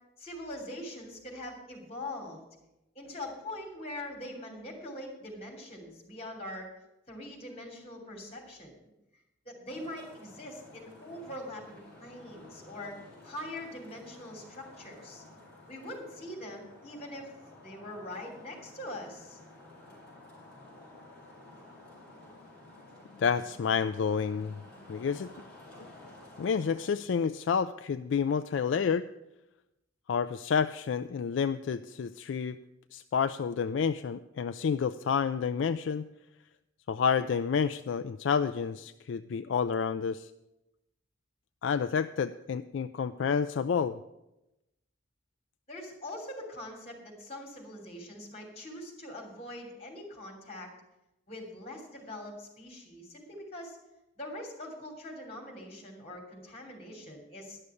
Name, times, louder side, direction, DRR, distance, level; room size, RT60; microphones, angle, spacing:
voice 1, 0.2-2.4 2.9-6.7 7.1-8.7 9.4-15.2 15.7-17.3 17.6-19.4 45.7-50.7 51.3-53.8 54.2-57.6, left 1 dB, 30° left, 2 dB, 3.0 m, -43 dB
Traffic noise roadway noise, 9.7-26.9, left 2 dB, 5° left, 4.5 m, -52 dB
voice 2, 23.2-24.6 24.9-25.3 26.4-29.1 30.1-32.6 32.9-36.1 36.9-40.3 41.6-44.0, left 6 dB, 65° left, 11 dB, 0.3 m, -29 dB
11.0 x 6.5 x 8.4 m, 0.92 s
head